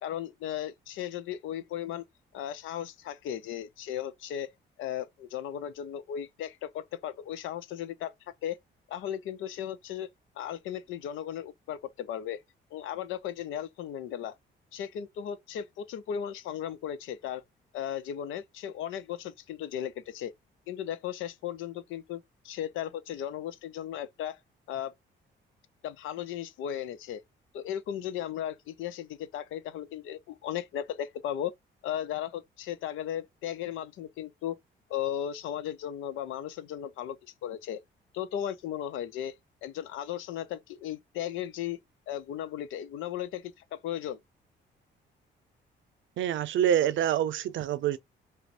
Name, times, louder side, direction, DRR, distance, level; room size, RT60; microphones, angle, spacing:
voice 1, 0.0-2.0 2.3-4.5 4.8-8.1 8.4-8.6 8.9-10.1 10.4-12.4 12.7-14.4 14.7-17.4 17.7-20.3 20.7-24.4 24.7-24.9 25.8-27.2 27.5-31.5 31.8-34.6 34.9-37.8 38.1-39.3 39.6-41.8 42.1-44.2, left 10 dB, 85° left, 0.6 m, -36 dB
voice 2, 46.2-48.0, right 10 dB, 75° right, 0.6 m, -26 dB
5.7 x 2.1 x 2.6 m
cardioid pair, 90°, 20 cm